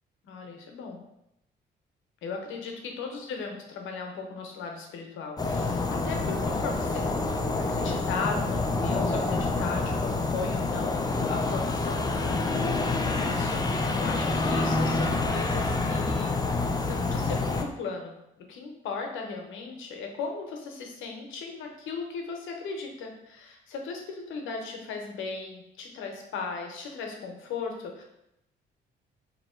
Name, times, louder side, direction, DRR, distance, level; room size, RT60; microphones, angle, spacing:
voice 1, 0.2-1.0 2.2-7.1 7.7-18.2 18.5-28.0, left 4 dB, 85° left, 2 dB, 0.8 m, -37 dB
sound 1, 5.4-17.6, left 3 dB, 20° left, 0.5 m, -27 dB
3.0 x 2.9 x 4.3 m, 0.83 s
cardioid pair, 90°, 20 cm